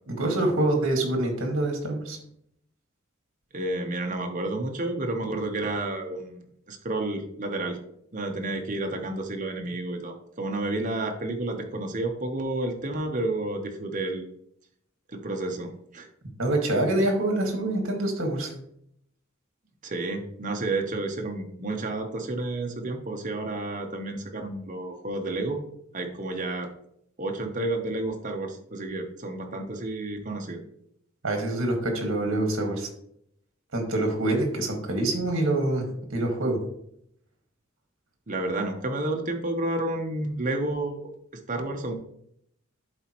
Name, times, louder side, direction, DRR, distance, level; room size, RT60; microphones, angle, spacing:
voice 1, 0.1-2.2 16.4-18.5 31.2-32.9 33.7-36.6, right 1 dB, 65° right, 3 dB, 1.8 m, -26 dB
voice 2, 3.5-7.8 8.1-14.3 15.1-16.1 19.8-25.6 25.9-26.7 27.2-30.6 38.3-41.1 41.5-41.9, right 2 dB, 40° right, 4 dB, 0.9 m, -30 dB
11.0 x 4.2 x 3.0 m, 0.72 s
head